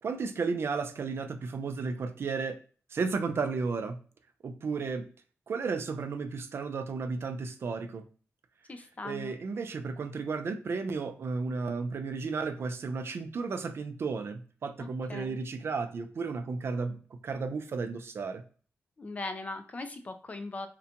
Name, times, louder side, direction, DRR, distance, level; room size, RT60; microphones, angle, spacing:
voice 1, 0.0-2.6 2.9-4.0 4.4-5.0 5.5-8.0 9.0-18.4, right 4 dB, 50° right, 7 dB, 0.4 m, -33 dB
voice 2, 8.7-9.3 14.8-15.4 19.0-20.7, left 2 dB, 30° left, 8 dB, 0.3 m, -39 dB
2.8 x 2.1 x 2.5 m, 0.41 s
wide cardioid pair, 165°, 5 cm